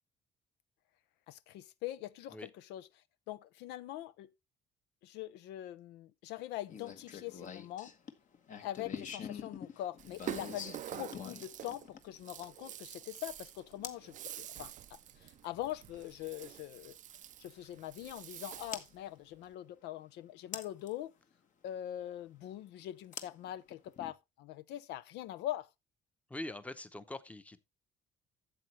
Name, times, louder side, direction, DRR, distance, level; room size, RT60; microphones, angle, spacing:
voice 1, 1.3-2.9 3.3-4.3 5.0-7.9 8.6-17.0 17.4-21.1 21.6-25.7, left 13 dB, 85° left, 0.6 m, -43 dB
sound 1, 6.7-12.7 13.8-14.1 16.0-16.1 18.7-18.9 20.5-20.9 23.1-24.1, left 7 dB, 50° left, 1.3 m, -45 dB
Rattle (instrument), 10.0-19.0, right 12 dB, 50° right, 0.4 m, -47 dB
voice 2, 26.3-27.6, left 1 dB, 10° left, 0.8 m, -43 dB
12.0 x 7.7 x 3.1 m
cardioid pair, 110°, 17 cm